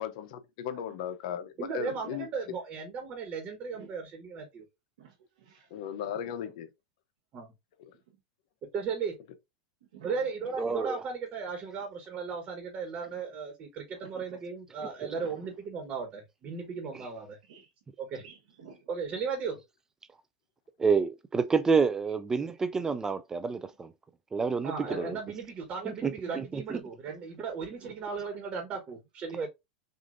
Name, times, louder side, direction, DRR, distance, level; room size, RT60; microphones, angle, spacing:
voice 1, 0.0-2.3 5.7-6.7 7.8-7.9 24.8-25.2, left 9 dB, 65° left, 0.8 m, -37 dB
voice 2, 0.6-1.0 1.9-2.0 3.7-3.9 5.0-6.1 6.4-6.5 8.1-8.2 9.9-10.5 13.1-13.2 14.0-14.4 15.1-15.5 16.7-16.8 17.4-17.7 18.2-18.9 22.1-22.2 27.2-27.4 27.8-28.0, right 6 dB, 90° right, 1.1 m, -52 dB
voice 3, 1.6-4.6 7.3-7.5 8.7-9.1 10.0-17.4 18.0-18.2 18.9-19.6 24.6-29.5, right 5 dB, 35° right, 1.3 m, -36 dB
voice 4, 10.6-11.0 15.0-15.1 20.8-23.9 24.3-25.2 25.9-26.8 29.3-29.5, right 5 dB, 15° right, 0.3 m, -28 dB
6.2 x 2.6 x 2.6 m
supercardioid pair, 140°, 4 cm